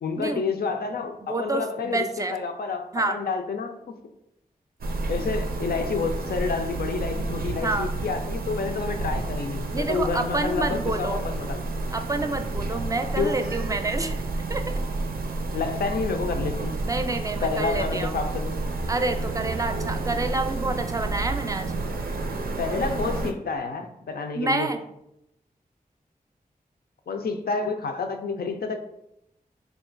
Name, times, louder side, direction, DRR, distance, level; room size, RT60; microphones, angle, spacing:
voice 1, 0.0-3.9 5.1-11.7 13.2-13.5 15.5-16.8 17.4-18.5 22.6-24.7 27.1-28.8, left 4 dB, 85° left, 6 dB, 0.4 m, -29 dB
voice 2, 1.2-2.4 2.9-3.2 7.6-7.9 9.7-11.2 11.9-14.6 16.8-18.1 18.9-21.7 24.3-24.8, right 2 dB, 20° right, 7 dB, 0.4 m, -28 dB
sound 1, 4.8-23.3, right 3 dB, 80° right, 0.4 m, -30 dB
3.7 x 2.4 x 3.8 m, 0.83 s
cardioid pair, 45°, 16 cm